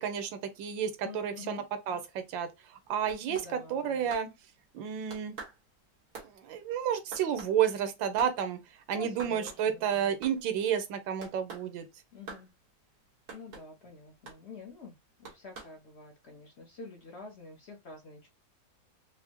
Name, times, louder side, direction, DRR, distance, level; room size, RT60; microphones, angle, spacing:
voice 1, 0.0-2.5 2.9-4.3 4.7-5.3 6.3-8.6 8.9-11.9, right 8 dB, 85° right, 1.4 m, -31 dB
voice 2, 1.0-1.6 3.2-4.1 8.9-10.1 12.1-12.5 13.3-18.3, left 4 dB, 75° left, 0.6 m, -48 dB
sound 1, 2.8-4.8 5.1-8.4 8.7-8.8 9.1-9.8 10.1-10.7 11.2-11.7 12.3-12.5 13.3-13.7 14.2-14.4 15.2-15.8, right 4 dB, 55° right, 1.7 m, -46 dB
4.7 x 2.0 x 2.8 m
omnidirectional pair, 2.1 m